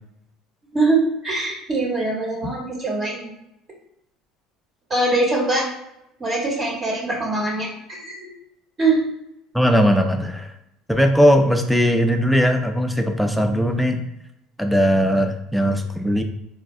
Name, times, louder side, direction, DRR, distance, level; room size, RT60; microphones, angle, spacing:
voice 1, 0.7-3.3 4.9-5.6 6.2-8.3 8.8-9.0, right 2 dB, 30° right, -3 dB, 1.0 m, -22 dB
voice 2, 9.5-10.5 10.9-14.0 14.6-16.2, equal, ahead, 4 dB, 0.4 m, -19 dB
4.0 x 2.1 x 2.6 m, 0.84 s
supercardioid pair, 95°, 0 cm